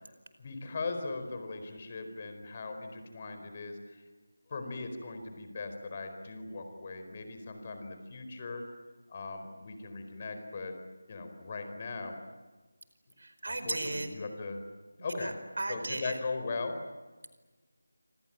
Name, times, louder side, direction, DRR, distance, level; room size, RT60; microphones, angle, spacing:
voice 1, 0.4-4.0 4.5-8.6 9.1-10.7 11.1-12.2 13.5-14.6 15.0-15.3 15.7-16.8, left 3 dB, 30° left, 7 dB, 4.5 m, -39 dB
voice 2, 13.2-14.1 15.1-16.2, right 2 dB, 55° right, 9 dB, 4.7 m, -36 dB
27.0 x 27.0 x 7.7 m, 1.3 s
figure-of-eight pair, 160°, 0 cm